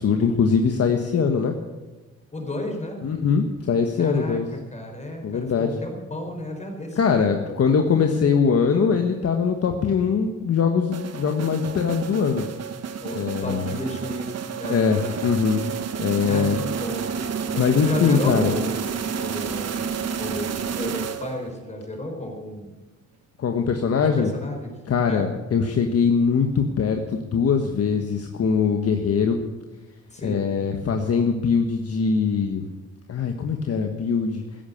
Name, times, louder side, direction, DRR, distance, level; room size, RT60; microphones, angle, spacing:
voice 1, 0.0-1.5 3.0-4.4 5.2-5.7 7.0-12.4 13.1-13.7 14.7-15.6 16.0-16.6 17.5-18.5 23.4-24.3 24.9-29.4 30.2-32.7 33.1-34.4, left 6 dB, 50° left, 4 dB, 1.5 m, -22 dB
voice 2, 2.3-3.0 4.0-8.2 13.0-14.9 16.2-17.1 17.4-18.9 19.2-22.7 23.8-24.7 25.0-25.3 30.1-30.7, left 1 dB, 25° left, 3 dB, 4.8 m, -33 dB
sound 1, 10.9-21.6, right 7 dB, 55° right, 1.6 m, -30 dB
14.5 x 11.0 x 8.7 m, 1.2 s
cardioid pair, 90°, 30 cm